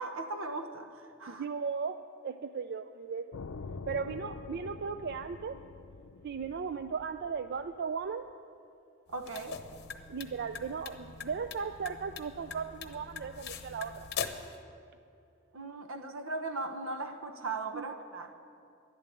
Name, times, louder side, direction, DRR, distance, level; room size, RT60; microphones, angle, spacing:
voice 1, 0.0-1.4 9.1-9.6 15.5-18.4, right 3 dB, 80° right, 1.1 m, -38 dB
voice 2, 1.3-2.0 2.2-3.4 3.9-5.5 6.2-8.3 10.1-14.1 17.7-17.8, right 5 dB, 55° right, 0.4 m, -36 dB
sound 1, 3.3-8.1, left 4 dB, 85° left, 0.6 m, -46 dB
sound 2, 9.1-14.5, left 6 dB, 55° left, 0.9 m, -42 dB
12.5 x 11.0 x 8.4 m
head